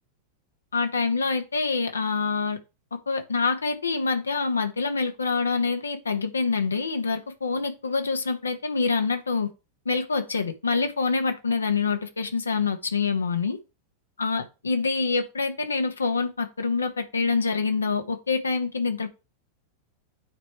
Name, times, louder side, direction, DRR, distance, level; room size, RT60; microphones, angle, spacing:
voice 1, 0.7-2.6 3.1-9.5 9.8-13.6 14.2-19.1, left 4 dB, 75° left, 1.0 m, -26 dB
9.2 x 3.3 x 4.5 m
figure-of-eight pair, 90°, 0 cm